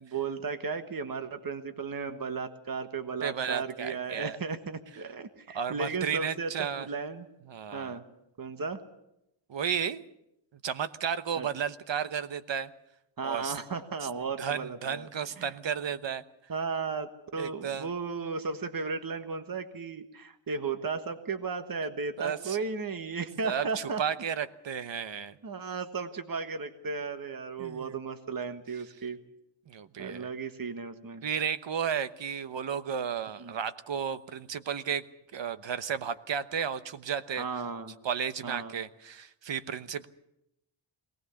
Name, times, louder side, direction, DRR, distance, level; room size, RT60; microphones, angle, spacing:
voice 1, 0.0-7.3 7.7-8.0 8.4-8.8 11.4-11.5 13.2-15.1 15.4-15.5 16.5-24.0 25.4-29.2 30.0-31.2 33.4-33.5 37.4-37.9 38.4-38.8, right 4 dB, 45° right, 8 dB, 1.5 m, -35 dB
voice 2, 3.2-4.4 5.5-6.9 7.5-8.0 9.5-10.1 10.6-12.7 13.2-13.5 14.4-16.2 17.4-17.9 22.2-22.6 23.4-25.3 27.6-27.9 29.7-30.3 31.2-35.0 35.3-37.4 38.0-40.1, right 7 dB, 65° right, 12 dB, 1.1 m, -33 dB
22.5 x 18.5 x 7.1 m, 0.83 s
wide cardioid pair, 120°, 47 cm